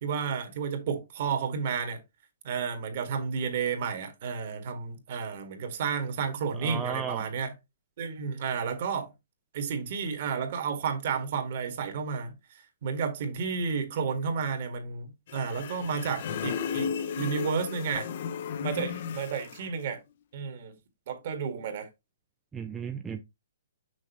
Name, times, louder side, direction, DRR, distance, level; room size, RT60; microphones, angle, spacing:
voice 1, 0.0-2.0 2.4-7.6 8.0-9.1 9.5-12.4 12.8-16.9 17.2-18.1 18.6-20.0 20.3-20.7 21.1-21.9, right 6 dB, 50° right, 1.8 m, -31 dB
voice 2, 6.6-7.3 22.5-23.2, right 7 dB, 10° right, 0.5 m, -34 dB
sound 1, 15.3-19.7, left 7 dB, 55° left, 0.8 m, -34 dB
6.3 x 6.0 x 2.9 m
hypercardioid pair, 145°, 0 cm